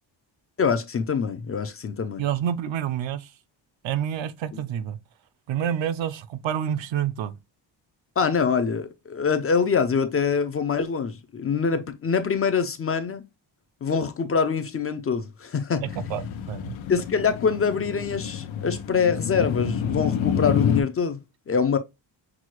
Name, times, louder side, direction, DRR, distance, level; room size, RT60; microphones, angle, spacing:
voice 1, 0.6-2.2 8.2-13.2 13.8-15.8 16.9-21.2 21.5-21.8, left 6 dB, 30° left, 0.4 m, -24 dB
voice 2, 2.2-3.3 3.8-5.0 5.5-7.3 16.1-16.8, right 9 dB, 75° right, 0.6 m, -28 dB
sound 1, 15.8-20.8, left 7 dB, 90° left, 0.7 m, -28 dB
6.0 x 2.2 x 3.0 m
wide cardioid pair, 175°, 46 cm